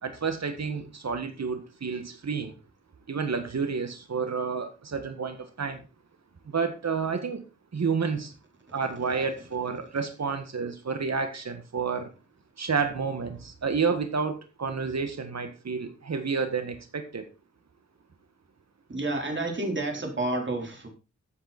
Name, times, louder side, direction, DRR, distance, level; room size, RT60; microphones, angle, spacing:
voice 1, 0.0-2.5 3.1-5.8 6.5-7.4 7.7-8.3 8.7-12.1 12.6-17.3, right 5 dB, 60° right, 8 dB, 1.8 m, -30 dB
voice 2, 18.9-20.9, right 2 dB, 40° right, 2 dB, 4.4 m, -30 dB
14.5 x 8.2 x 4.4 m, 0.31 s
wide cardioid pair, 90°, 30 cm